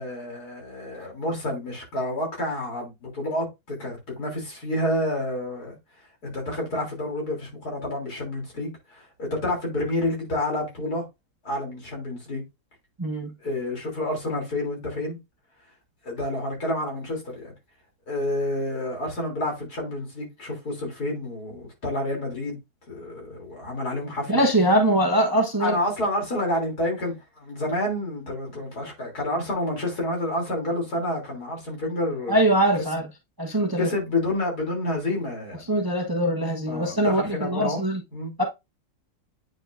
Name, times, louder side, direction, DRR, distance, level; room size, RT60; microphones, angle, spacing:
voice 1, 0.0-5.8 6.2-11.0 11.4-12.4 13.4-15.2 16.0-17.5 18.1-22.6 22.9-24.4 25.6-32.4 33.8-35.6 36.7-37.8 38.1-38.3, left 1 dB, 75° left, 3.7 m, -29 dB
voice 2, 13.0-13.3 24.3-25.8 32.3-33.0 33.4-33.9 35.7-38.0 38.4-38.5, right 1 dB, 15° right, 0.9 m, -22 dB
8.8 x 5.2 x 2.5 m
omnidirectional pair, 1.7 m